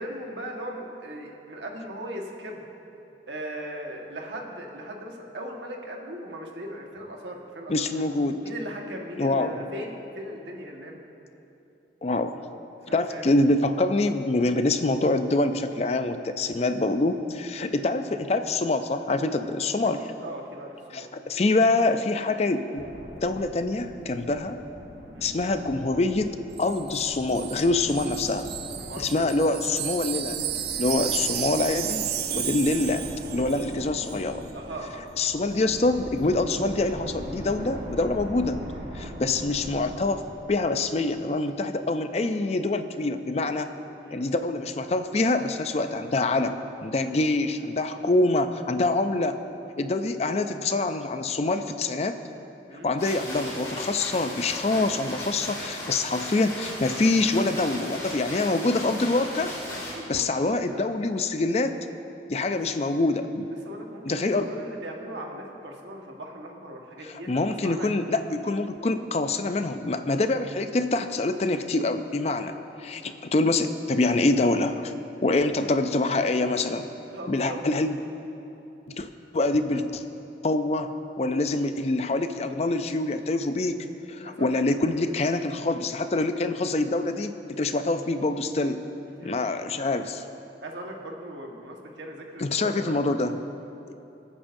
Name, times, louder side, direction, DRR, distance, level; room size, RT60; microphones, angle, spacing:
voice 1, 0.0-2.6 3.3-8.0 8.4-11.0 12.8-13.4 17.6-17.8 20.0-21.1 25.1-25.3 28.8-29.3 32.2-32.4 34.5-35.2 38.9-39.1 44.0-44.3 50.3-50.6 52.7-52.9 59.7-60.9 62.5-63.0 63.6-68.2 72.3-72.5 73.0-73.2 77.1-77.6 84.2-84.6 84.9-85.0 87.1-87.3 89.1-89.6 90.6-93.2, right 1 dB, 85° right, 0 dB, 1.5 m, -39 dB
voice 2, 7.7-8.4 9.2-9.6 12.0-12.4 12.9-20.1 20.9-22.8 23.2-24.6 25.2-26.3 26.6-28.5 29.0-30.4 30.8-33.1 33.3-34.4 35.2-38.6 38.9-40.2 40.5-43.7 44.1-46.6 46.8-49.4 49.8-52.2 52.8-59.5 60.1-61.8 62.3-63.5 64.0-64.5 67.3-72.5 72.8-74.9 75.2-76.9 77.3-78.0 78.9-79.1 79.3-80.0 80.4-80.9 81.2-83.8 84.1-88.8 89.2-90.2 92.4-93.4, left 2 dB, 35° left, 9 dB, 0.4 m, -25 dB
sound 1, 22.7-41.2, equal, 40° right, 1.2 m, -41 dB
Wind chime, 26.6-33.8 34.1-34.3, right 11 dB, 60° right, 0.6 m, -33 dB
sound 2, 53.0-59.9, left 1 dB, 20° left, 2.7 m, -36 dB
25.5 x 8.9 x 2.7 m, 2.9 s
head